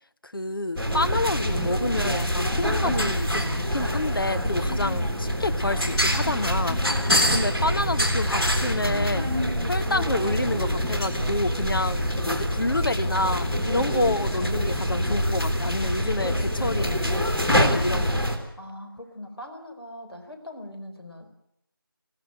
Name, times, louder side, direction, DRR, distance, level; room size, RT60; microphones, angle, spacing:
voice 1, 0.3-6.8 7.3-9.3 9.6-18.2, left 2 dB, 65° left, 11 dB, 1.1 m, -28 dB
sound 1, 0.8-18.4, equal, 5° left, 1.3 m, -25 dB
voice 2, 18.6-21.3, left 1 dB, 85° left, 5 dB, 4.7 m, -41 dB
20.5 x 16.5 x 9.0 m, 0.74 s
figure-of-eight pair, 170°, 12 cm